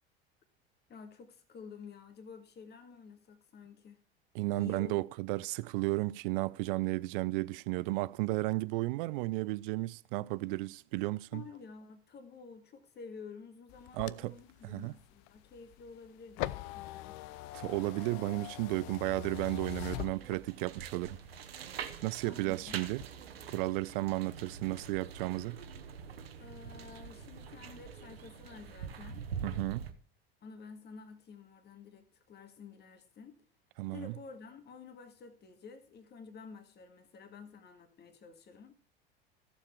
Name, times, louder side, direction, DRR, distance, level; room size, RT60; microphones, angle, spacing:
voice 1, 0.9-4.0 4.6-5.0 11.3-17.2 22.2-22.7 26.4-29.3 30.4-33.4 33.9-38.7, left 5 dB, 35° left, 2.1 m, -51 dB
voice 2, 4.3-11.4 13.9-14.3 14.6-14.9 17.5-21.2 22.0-23.0 23.5-25.6 29.4-29.9 33.8-34.1, right 20 dB, 60° right, 0.6 m, -33 dB
sound 1, 13.7-20.8 21.2-22.2 22.6-23.0, left 16 dB, 55° left, 0.6 m, -43 dB
sound 2, 19.3-29.9, right 6 dB, 80° right, 1.3 m, -45 dB
14.5 x 7.3 x 4.6 m
figure-of-eight pair, 75°, 30 cm